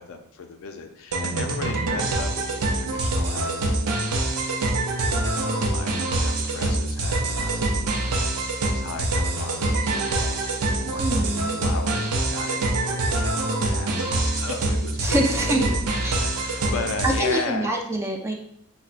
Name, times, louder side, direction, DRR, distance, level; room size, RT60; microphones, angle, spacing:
voice 1, 0.0-4.0 5.3-7.8 8.4-10.4 10.7-11.3 11.6-17.7, left 4 dB, 65° left, 6 dB, 0.4 m, -36 dB
sound 1, 1.1-17.4, right 2 dB, 90° right, 0.5 m, -25 dB
voice 2, 11.0-11.6 15.0-15.8 16.0-16.2 17.0-18.3, right 1 dB, 10° right, 2 dB, 0.3 m, -25 dB
5.4 x 2.1 x 2.4 m, 0.74 s
head